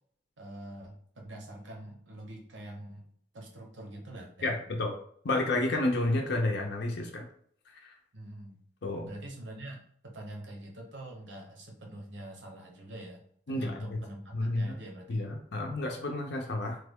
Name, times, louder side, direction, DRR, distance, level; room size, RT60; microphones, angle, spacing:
voice 1, 0.4-4.6 8.1-8.6 9.1-13.2 13.5-15.3, right 1 dB, 80° right, 1 dB, 0.8 m, -45 dB
voice 2, 4.4-4.9 5.2-7.2 7.8-7.9 8.8-9.1 13.5-14.0 14.3-14.8 15.1-16.8, left 2 dB, 65° left, 1 dB, 0.6 m, -30 dB
3.3 x 2.2 x 3.5 m, 0.63 s
head